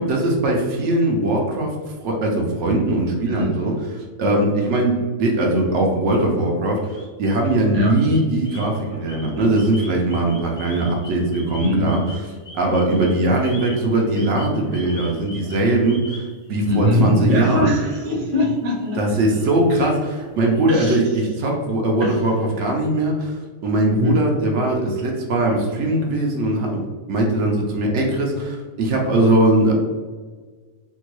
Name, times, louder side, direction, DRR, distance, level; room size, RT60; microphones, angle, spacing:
voice 1, 0.0-1.7 2.0-3.7 4.2-12.0 12.5-16.2 16.5-17.7 19.0-23.4 23.6-26.8 27.1-29.7, right 1 dB, 80° right, 0 dB, 0.9 m, -20 dB
sound 1, 6.8-7.6 7.9-17.0 17.3-21.0, left 1 dB, 45° left, 0.9 m, -43 dB
voice 2, 7.7-8.1 11.6-12.0 16.7-19.0 20.7-21.0 22.0-22.2 23.9-24.3, left 1 dB, 40° right, -2 dB, 0.7 m, -21 dB
3.6 x 2.3 x 3.0 m, 1.4 s
omnidirectional pair, 1.2 m